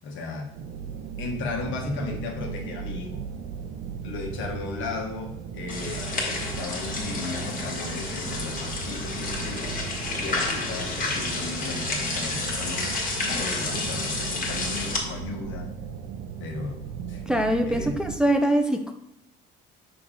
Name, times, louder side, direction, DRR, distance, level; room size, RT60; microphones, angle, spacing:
voice 1, 0.0-0.5 1.2-3.2 4.0-9.8 10.2-15.7 16.4-16.8 17.1-17.3 17.6-18.0, left 3 dB, 65° left, 2 dB, 1.3 m, -35 dB
sound 1, 0.5-18.2, right 7 dB, 80° right, 0.7 m, -37 dB
sound 2, 5.7-15.0, left 3 dB, 40° left, 1.6 m, -30 dB
voice 2, 17.3-18.9, right 1 dB, 5° right, 5 dB, 0.5 m, -23 dB
6.0 x 5.1 x 3.7 m, 0.77 s
cardioid pair, 120°, 21 cm